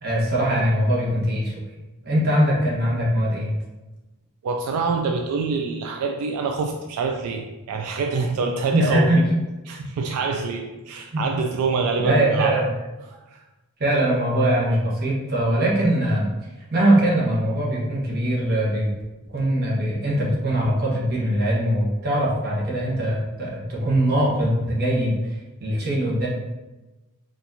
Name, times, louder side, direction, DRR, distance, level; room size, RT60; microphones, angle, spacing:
voice 1, 0.0-1.5 2.0-3.6 8.7-9.3 9.7-9.8 11.1-11.2 12.0-12.7 13.8-16.3 16.7-18.9 19.3-26.3, right 1 dB, 45° right, -5 dB, 0.9 m, -21 dB
voice 2, 4.4-9.1 9.7-12.6 13.1-13.4, right 4 dB, 80° right, 5 dB, 0.3 m, -26 dB
4.2 x 2.4 x 2.7 m, 1.1 s
head